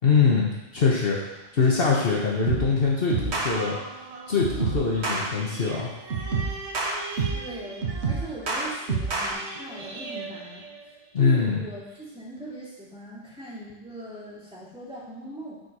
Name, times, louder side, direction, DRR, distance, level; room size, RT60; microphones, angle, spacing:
voice 1, 0.0-1.2 1.5-3.8 4.3-5.9 11.1-11.6, left 5 dB, 60° left, -3 dB, 1.3 m, -23 dB
sound 1, 2.5-2.8 3.1-3.5 4.4-5.3 6.1-7.5 7.8-9.3, right 4 dB, 70° right, 1.5 m, -27 dB
sound 2, 3.5-11.4 11.9-12.0, right 3 dB, 40° right, 0.8 m, -41 dB
voice 2, 7.3-15.6, right 1 dB, 5° right, -8 dB, 2.6 m, -40 dB
9.1 x 4.5 x 4.8 m, 1.0 s
omnidirectional pair, 1.1 m